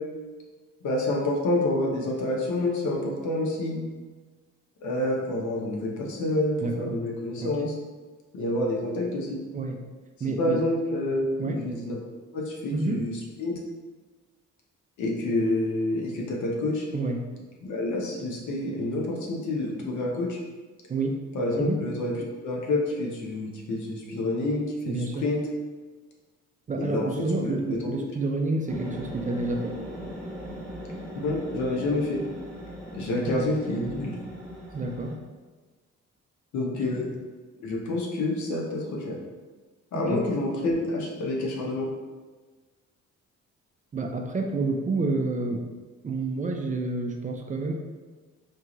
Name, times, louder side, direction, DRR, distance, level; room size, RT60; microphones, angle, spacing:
voice 1, 0.8-3.8 4.8-7.7 8.3-9.4 10.4-12.0 12.3-13.1 13.4-13.5 15.0-16.9 17.6-20.4 21.3-22.1 22.4-25.4 26.8-27.1 27.4-27.6 31.1-32.2 32.9-34.2 36.5-37.1 37.6-39.2 39.9-41.9, left 2 dB, 75° left, -1 dB, 0.9 m, -28 dB
voice 2, 6.6-7.0 7.4-7.8 9.5-9.8 10.2-10.6 11.4-11.6 12.7-13.0 16.9-17.3 20.9-21.2 21.6-21.8 24.9-25.3 26.7-29.7 33.2-33.5 34.7-35.2 36.9-37.0 39.9-40.2 43.9-45.7 46.0-47.7, right 3 dB, 25° right, 2 dB, 0.4 m, -29 dB
sound 1, 28.7-35.1, equal, 5° left, 1.2 m, -39 dB
4.5 x 2.4 x 3.0 m, 1.3 s
cardioid pair, 90°, 30 cm